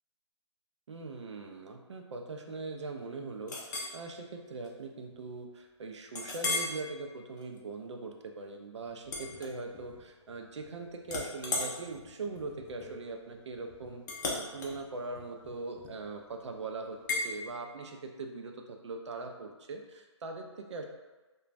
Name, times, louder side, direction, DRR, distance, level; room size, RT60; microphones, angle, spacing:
voice 1, 0.9-14.0 14.3-20.8, right 3 dB, 70° right, 3 dB, 0.5 m, -41 dB
Chink clink, 3.5-4.0 4.5-4.7 5.1-5.2 6.1-6.8 7.3-7.6 9.0-10.0 10.3-10.7 11.0-16.2 17.1-17.3, left 3 dB, 40° left, 0.5 m, -37 dB
3.0 x 2.3 x 2.4 m, 1.2 s
hypercardioid pair, 160°, 15 cm